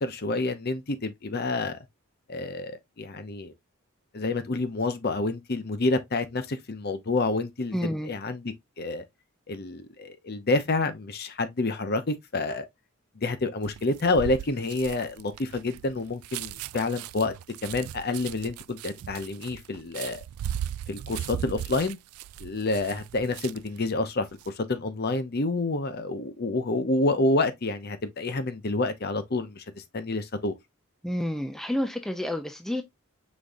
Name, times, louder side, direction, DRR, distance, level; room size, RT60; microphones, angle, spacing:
voice 1, 0.0-1.8 2.3-3.5 4.1-9.0 9.5-12.7 13.2-17.3 17.6-20.2 20.9-22.0 22.4-30.6, left 2 dB, 45° left, 0.7 m, -28 dB
voice 2, 7.7-8.1 31.0-32.8, left 1 dB, ahead, 0.4 m, -29 dB
sound 1, 13.6-23.8 24.2-24.5, right 10 dB, 85° right, 0.3 m, -38 dB
5.2 x 3.7 x 2.6 m
head